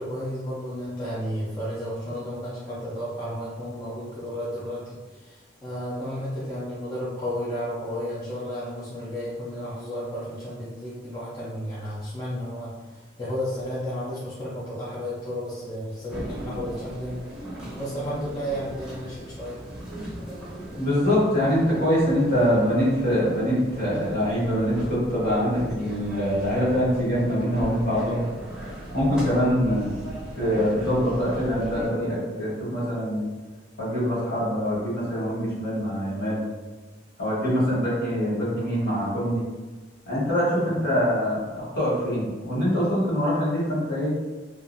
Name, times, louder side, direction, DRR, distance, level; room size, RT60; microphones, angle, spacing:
voice 1, 0.0-17.2 17.8-19.6 37.5-37.7 40.6-40.9, equal, 20° left, -9 dB, 0.5 m, -33 dB
sound 1, 16.1-31.9, right 1 dB, 5° right, 0.8 m, -37 dB
voice 2, 20.7-28.2 28.9-29.9 30.3-33.2 33.8-36.4 37.2-39.4 40.1-44.1, equal, 60° left, -9 dB, 1.4 m, -24 dB
2.5 x 2.2 x 2.6 m, 1.2 s
head